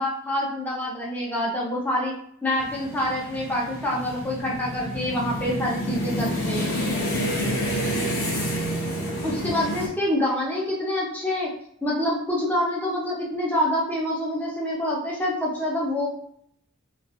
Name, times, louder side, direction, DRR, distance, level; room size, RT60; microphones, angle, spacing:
voice 1, 0.0-2.1 2.4-6.7 9.2-11.5 11.8-16.1, left 1 dB, 5° left, -5 dB, 0.6 m, -26 dB
sound 1, 2.6-9.9, equal, 90° left, 0.9 m, -28 dB
2.5 x 2.4 x 2.4 m, 0.67 s
head